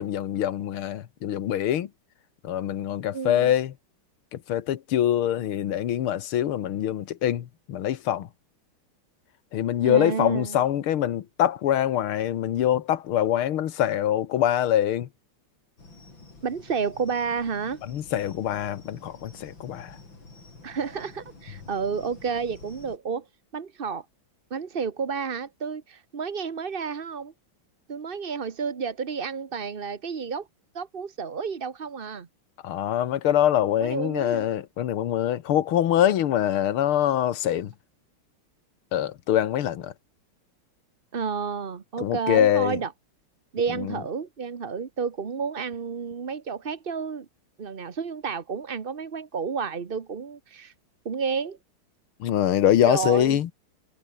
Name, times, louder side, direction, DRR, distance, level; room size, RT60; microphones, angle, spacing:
voice 1, 0.0-1.9 2.4-3.7 4.3-8.3 9.5-15.1 17.9-20.0 32.6-37.7 38.9-39.9 42.0-42.8 43.7-44.0 52.2-53.5, left 11 dB, 80° left, 2.1 m, -24 dB
voice 2, 3.1-3.5 9.8-10.6 16.4-17.8 20.6-23.3 23.5-24.0 24.5-27.3 27.9-30.5 30.7-32.3 33.8-34.5 41.1-42.9 43.5-47.3 47.6-50.7 51.0-51.6 52.8-53.4, right 5 dB, 35° right, 1.0 m, -31 dB
sound 1, 15.8-23.0, left 3 dB, 65° left, 6.4 m, -48 dB
omnidirectional pair, 2.3 m